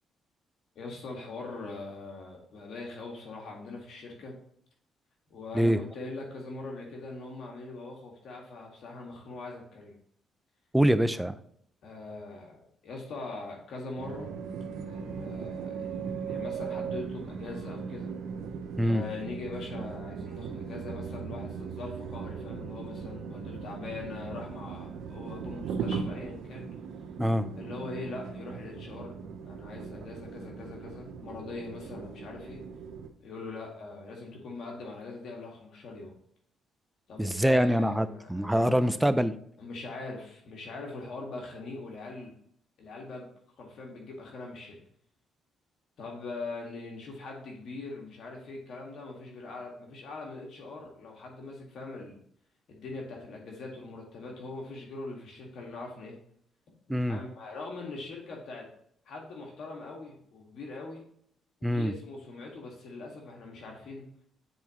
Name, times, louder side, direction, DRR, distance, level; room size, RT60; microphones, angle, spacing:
voice 1, 0.8-4.4 5.3-9.9 11.8-14.3 14.9-18.1 18.8-26.7 27.6-29.2 29.4-32.6 33.2-36.1 37.1-38.7 39.6-42.3 42.8-43.3 43.6-44.8 46.0-52.2 52.7-56.2 56.9-58.7 59.1-61.0 61.6-64.1, left 3 dB, 65° left, 0 dB, 1.8 m, -42 dB
voice 2, 10.7-11.4 18.8-19.0 27.2-27.5 37.2-39.4 56.9-57.2 61.6-61.9, equal, 5° right, 11 dB, 0.5 m, -24 dB
sound 1, 14.0-33.1, right 6 dB, 80° right, 0.7 m, -38 dB
9.2 x 4.6 x 3.0 m, 0.67 s
cardioid pair, 90°, 0 cm